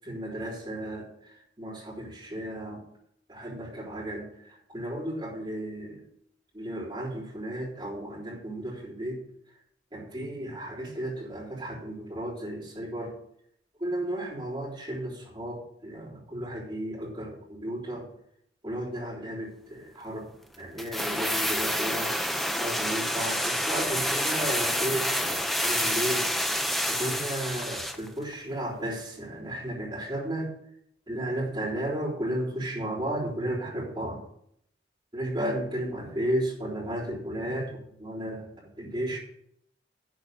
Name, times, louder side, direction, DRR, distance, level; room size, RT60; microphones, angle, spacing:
voice 1, 0.0-1.1 1.6-2.8 3.3-4.3 4.7-6.0 6.5-9.2 9.9-13.1 13.8-18.1 18.6-20.3 20.6-22.1 22.6-26.3 26.9-30.5 31.1-34.2 35.1-37.7 38.0-39.2, right 1 dB, 25° right, -6 dB, 3.7 m, -33 dB
sound 1, 20.8-28.1 28.3-28.4, equal, ahead, 0.6 m, -28 dB
11.0 x 4.7 x 7.8 m, 0.72 s
head